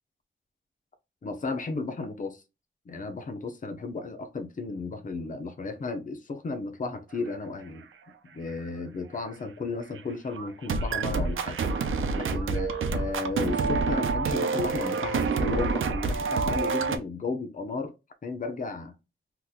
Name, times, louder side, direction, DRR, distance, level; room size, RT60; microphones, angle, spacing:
voice 1, 1.2-2.4 2.9-7.9 8.3-11.6 12.1-17.9 18.2-19.0, left 3 dB, 40° left, 0.6 m, -34 dB
sound 1, 10.0-10.1 10.3-17.0, right 4 dB, 90° right, 0.5 m, -27 dB
3.7 x 2.9 x 2.3 m
wide cardioid pair, 155°, 20 cm